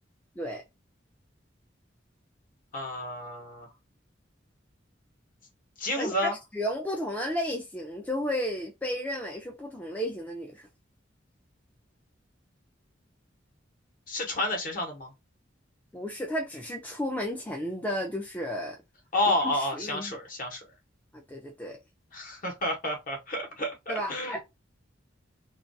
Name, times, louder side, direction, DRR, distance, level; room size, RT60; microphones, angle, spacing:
voice 1, 2.7-3.7 5.8-6.3 14.1-15.1 19.1-20.6 22.1-24.4, left 1 dB, 45° left, 0.9 m, -30 dB
voice 2, 6.0-10.7 15.9-18.8 19.5-20.2 21.1-21.8 23.9-24.4, equal, 10° left, 0.3 m, -33 dB
2.4 x 2.2 x 2.5 m
head